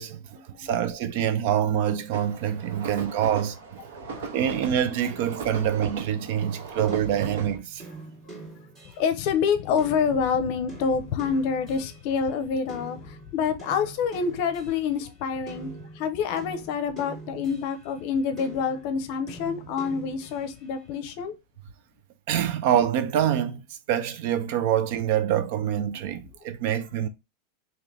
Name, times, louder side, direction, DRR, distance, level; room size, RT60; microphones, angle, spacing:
voice 1, 0.0-3.6 4.3-7.8 22.3-23.6 23.9-27.1, right 10 dB, 55° right, 0.5 m, -25 dB
sound 1, 2.1-7.6, right 5 dB, 85° right, 0.9 m, -38 dB
sound 2, 6.9-12.2 12.7-18.0 18.4-20.8, right 4 dB, 25° right, 2.5 m, -45 dB
voice 2, 9.0-21.3, left 6 dB, 50° left, 0.6 m, -27 dB
3.7 x 2.9 x 3.3 m
supercardioid pair, 160°, 0 cm